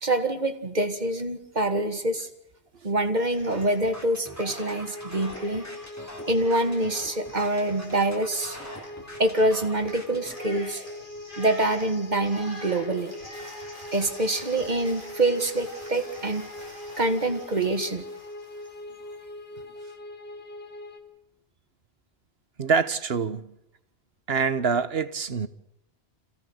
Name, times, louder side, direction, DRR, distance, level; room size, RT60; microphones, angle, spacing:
voice 1, 0.0-2.3 2.8-5.6 6.3-8.6 9.2-10.8 11.4-13.1 13.9-16.5 17.0-18.0, right 1 dB, 40° right, 2.0 m, -25 dB
Cheering, 3.2-4.0 4.3-18.8, equal, 50° left, 7.1 m, -45 dB
sound 1, 3.5-10.3, equal, 15° left, 3.5 m, -44 dB
sound 2, 4.5-21.0, left 1 dB, 65° left, 3.1 m, -42 dB
voice 2, 22.6-23.5 24.3-25.5, right 5 dB, 65° right, 1.4 m, -25 dB
27.5 x 16.5 x 8.0 m
omnidirectional pair, 1.1 m